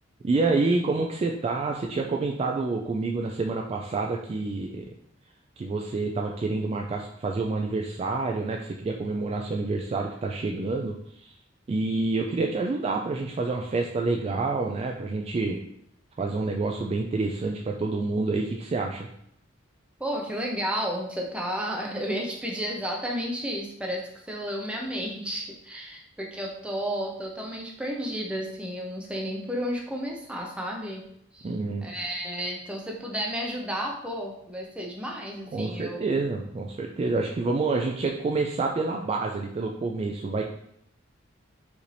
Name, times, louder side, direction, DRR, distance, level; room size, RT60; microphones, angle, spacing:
voice 1, 0.2-4.8 5.6-10.9 11.2-11.3 11.7-15.6 16.2-19.1 31.4-31.9 35.5-40.4, right 3 dB, 30° right, 1 dB, 0.3 m, -28 dB
voice 2, 20.0-31.0 31.3-31.5 31.8-36.2, equal, 5° right, -1 dB, 0.7 m, -32 dB
5.0 x 2.7 x 3.2 m, 0.74 s
head